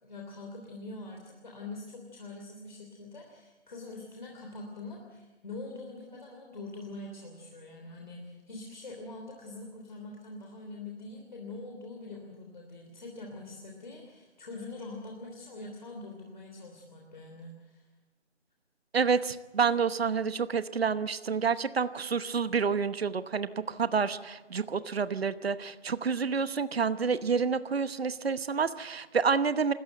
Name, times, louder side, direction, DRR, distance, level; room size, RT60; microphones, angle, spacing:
voice 1, 0.0-17.8, left 2 dB, 40° left, 0 dB, 3.3 m, -44 dB
voice 2, 18.9-29.7, right 5 dB, 60° right, 13 dB, 1.0 m, -28 dB
28.0 x 14.5 x 8.0 m, 1.1 s
hypercardioid pair, 180°, 35 cm